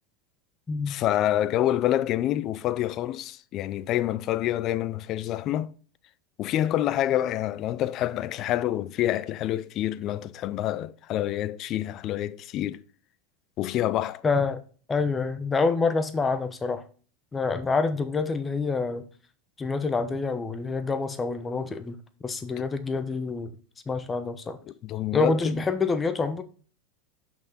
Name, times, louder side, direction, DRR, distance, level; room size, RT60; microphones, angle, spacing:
voice 1, 0.9-5.7 6.4-12.8 13.6-14.2 24.8-25.6, left 13 dB, 45° left, 0.4 m, -27 dB
voice 2, 14.2-14.6 14.9-16.8 17.3-19.0 19.6-22.0 22.2-23.6 23.9-24.6 25.1-26.4, left 4 dB, 20° left, 0.9 m, -27 dB
6.1 x 5.5 x 3.9 m
hypercardioid pair, 110°, 0 cm